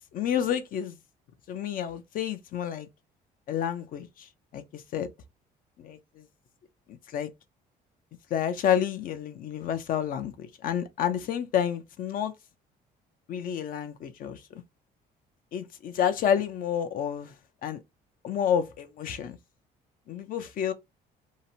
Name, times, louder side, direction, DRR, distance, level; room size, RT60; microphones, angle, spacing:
voice 1, 0.1-0.9 1.5-2.9 3.5-5.1 5.8-6.0 6.9-7.3 8.3-12.3 13.3-14.6 15.5-17.3 17.6-17.8 18.2-19.4 20.1-20.7, left 9 dB, 55° left, 0.4 m, -29 dB
2.8 x 2.1 x 2.6 m
cardioid pair, 110°, 17 cm